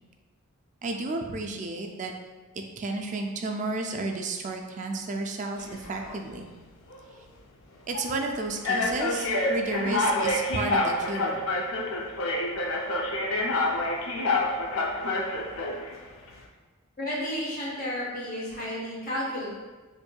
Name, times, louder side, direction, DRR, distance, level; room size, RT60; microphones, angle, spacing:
voice 1, 0.8-2.1 2.8-6.5 7.9-11.5, right 2 dB, 35° right, 3 dB, 0.3 m, -32 dB
sound 1, 5.6-6.2 6.9-7.1 7.9-8.1 8.6-15.9, left 2 dB, 65° left, 0.4 m, -27 dB
voice 2, 17.0-19.5, equal, 40° left, -6 dB, 0.8 m, -32 dB
4.4 x 2.6 x 2.2 m, 1.3 s
head